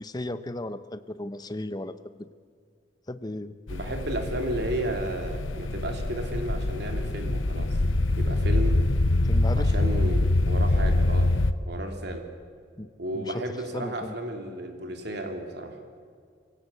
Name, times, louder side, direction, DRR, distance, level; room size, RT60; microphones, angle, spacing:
voice 1, 0.0-2.3 3.1-3.6 9.2-9.7 12.8-13.4 13.7-14.2, left 1 dB, 20° left, 12 dB, 0.8 m, -35 dB
sound 1, 3.7-11.5, left 2 dB, 85° left, 0.9 m, -25 dB
voice 2, 3.7-7.8 8.2-8.8 9.5-11.3 11.7-12.2 13.0-15.7, right 1 dB, 60° right, 4 dB, 3.0 m, -33 dB
23.5 x 16.5 x 8.4 m, 2.1 s
head